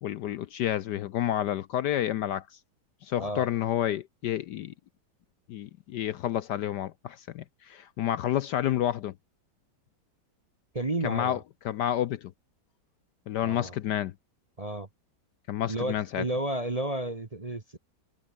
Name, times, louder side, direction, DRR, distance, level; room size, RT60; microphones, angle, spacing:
voice 1, 0.0-2.5 3.0-4.7 5.5-9.1 11.0-11.4 11.6-12.3 13.3-14.1 15.5-16.2, left 11 dB, 70° left, 1.1 m, -29 dB
voice 2, 3.2-3.5 10.7-11.4 13.4-13.7 14.6-14.9 15.7-17.8, right 1 dB, 25° right, 1.0 m, -32 dB
omnidirectional pair, 2.2 m